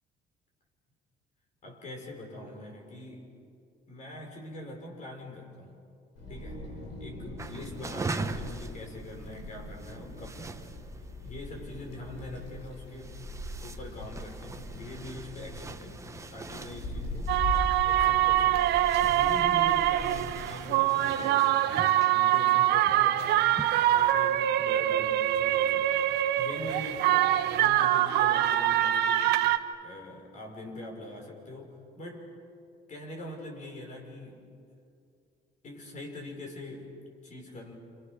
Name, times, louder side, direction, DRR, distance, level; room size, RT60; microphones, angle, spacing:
voice 1, 1.6-3.3 3.9-5.8 6.3-6.7 7.0-10.7 11.2-13.2 13.6-17.4 17.8-18.7 19.1-23.4 23.9-26.1 26.4-29.4 29.8-32.4 32.9-34.5 35.6-36.9 37.2-37.7, left 1 dB, 45° left, 2 dB, 6.2 m, -43 dB
Wind, 6.2-20.3, left 1 dB, 85° left, 6.5 m, -40 dB
sound 1, 7.4-23.8, right 3 dB, 15° right, 1.3 m, -43 dB
sound 2, 17.3-29.6, right 13 dB, 80° right, 1.1 m, -24 dB
29.5 x 29.0 x 6.7 m, 2.4 s
cardioid pair, 110°, 17 cm